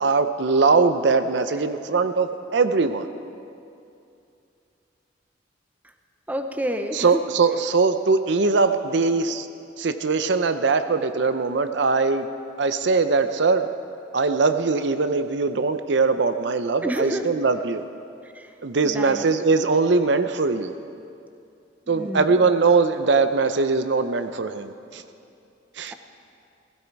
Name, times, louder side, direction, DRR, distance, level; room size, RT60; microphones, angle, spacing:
voice 1, 0.0-3.1 6.9-9.5 9.8-12.3 12.6-13.7 14.1-17.8 18.6-20.7 21.9-25.0 25.8-25.9, right 4 dB, 65° right, 9 dB, 0.6 m, -21 dB
voice 2, 6.3-7.2 16.8-17.3 18.3-18.5 18.8-19.2 21.9-22.4, equal, 10° right, 6 dB, 0.7 m, -29 dB
16.0 x 15.5 x 4.6 m, 2.6 s
head